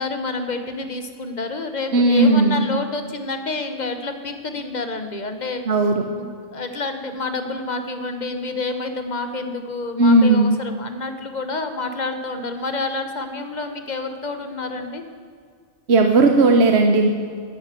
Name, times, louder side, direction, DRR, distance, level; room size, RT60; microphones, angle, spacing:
voice 1, 0.0-5.6 6.1-15.0, left 3 dB, 40° left, 7 dB, 1.2 m, -28 dB
voice 2, 1.9-2.7 5.7-6.0 10.0-10.6 15.9-17.1, right 2 dB, 65° right, 4 dB, 1.2 m, -15 dB
12.5 x 10.5 x 7.6 m, 2.1 s
omnidirectional pair, 1.2 m